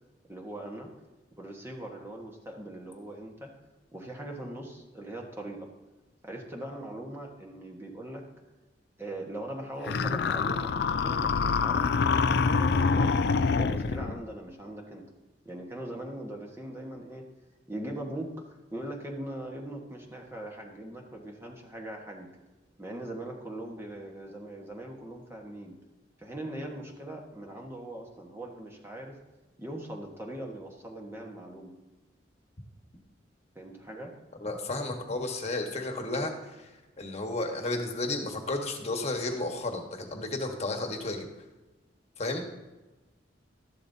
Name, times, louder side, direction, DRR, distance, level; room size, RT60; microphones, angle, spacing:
voice 1, 0.3-0.9 1.4-3.5 3.9-5.7 6.2-8.2 9.0-13.3 13.6-15.0 15.4-17.2 17.7-18.3 18.7-22.3 22.8-25.7 26.2-29.2 29.6-31.7 33.5-34.1, right 1 dB, 15° right, 0 dB, 1.3 m, -40 dB
sound 1, 9.9-14.2, left 5 dB, 65° left, 0.4 m, -26 dB
voice 2, 34.4-41.3 42.2-42.5, left 2 dB, 35° left, 4 dB, 1.4 m, -33 dB
13.0 x 11.5 x 2.8 m, 1.1 s
head